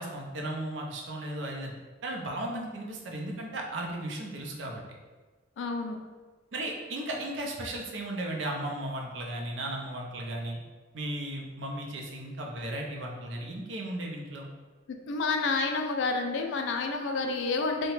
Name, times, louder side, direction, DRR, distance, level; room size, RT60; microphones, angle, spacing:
voice 1, 0.0-1.7 2.0-4.8 6.5-10.6 10.9-14.5, right 1 dB, 70° right, 0 dB, 0.5 m, -35 dB
voice 2, 5.6-6.0 15.1-17.9, left 3 dB, 70° left, 4 dB, 0.3 m, -29 dB
2.8 x 2.1 x 3.0 m, 1.3 s
head